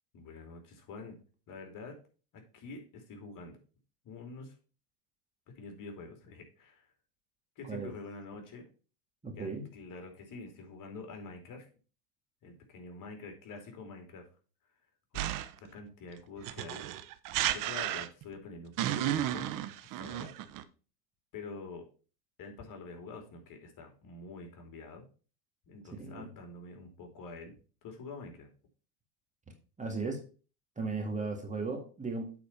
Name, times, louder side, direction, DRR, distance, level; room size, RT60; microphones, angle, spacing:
voice 1, 0.1-1.2 1.5-2.0 2.3-3.6 4.0-4.5 5.5-6.9 7.6-8.7 9.4-11.7 12.4-14.3 15.1-15.2 15.6-16.8 17.5-19.5 19.8-20.3 21.3-21.8 22.4-25.0 25.7-27.6 27.8-28.5, left 3 dB, 40° left, 4 dB, 2.8 m, -46 dB
voice 2, 9.2-9.6 26.0-26.3 29.8-30.2 30.8-32.3, right 3 dB, 15° right, 2 dB, 1.9 m, -36 dB
sound 1, 15.1-15.7 16.4-18.3 18.8-20.6, right 12 dB, 45° right, 0.8 m, -33 dB
8.5 x 4.2 x 5.7 m, 0.36 s
hypercardioid pair, 100°, 46 cm